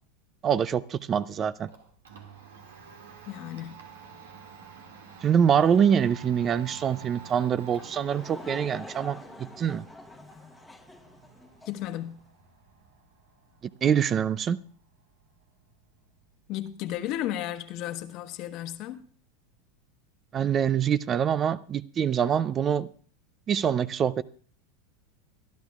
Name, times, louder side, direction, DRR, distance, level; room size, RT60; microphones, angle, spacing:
voice 1, 0.4-1.7 5.2-9.8 13.8-14.6 20.3-22.9 23.5-24.2, right 8 dB, 30° right, 0.5 m, -25 dB
Domestic sounds home sounds, 1.2-17.1, right 6 dB, 90° right, 2.0 m, -50 dB
voice 2, 3.2-3.8 11.6-12.2 16.5-19.0, left 13 dB, 55° left, 1.2 m, -34 dB
Laughter / Crowd, 7.7-11.9, left 2 dB, 5° left, 1.1 m, -46 dB
23.5 x 11.5 x 2.4 m
hypercardioid pair, 105°, 0 cm